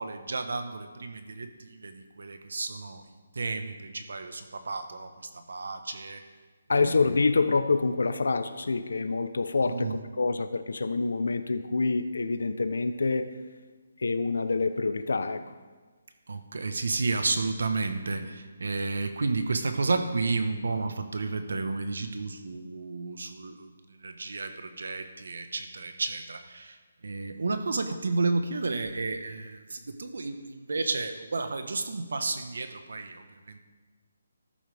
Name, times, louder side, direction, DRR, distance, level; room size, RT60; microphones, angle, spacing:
voice 1, 0.0-3.0 3.3-6.2 6.7-7.2 9.7-10.0 16.3-23.7 24.0-26.8 27.0-33.6, right 3 dB, 75° right, 8 dB, 1.3 m, -32 dB
voice 2, 6.7-13.3 14.0-15.4, left 3 dB, 80° left, 11 dB, 0.9 m, -26 dB
14.0 x 11.5 x 3.6 m, 1.4 s
hypercardioid pair, 165°, 0 cm